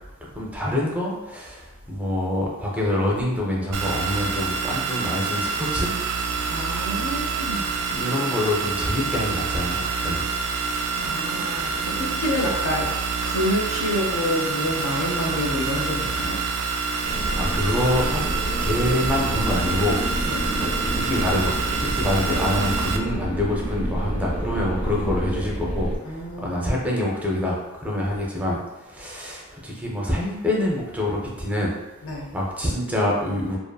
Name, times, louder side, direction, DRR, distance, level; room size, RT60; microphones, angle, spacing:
voice 1, 0.2-5.9 7.9-10.2 17.1-18.2 18.6-20.0 20.6-21.5 21.8-25.9 26.4-31.7 32.3-33.6, left 1 dB, 5° right, -3 dB, 0.5 m, -26 dB
sound 1, 3.7-23.0, right 5 dB, 80° right, 0.3 m, -27 dB
voice 2, 6.5-7.7 11.0-12.9 13.2-16.4 20.2-20.5 26.0-26.8 32.0-32.3, left 1 dB, 65° left, -2 dB, 0.6 m, -28 dB
sound 2, 17.0-26.0, equal, 30° left, 0.7 m, -28 dB
2.6 x 2.4 x 2.3 m, 1.1 s
head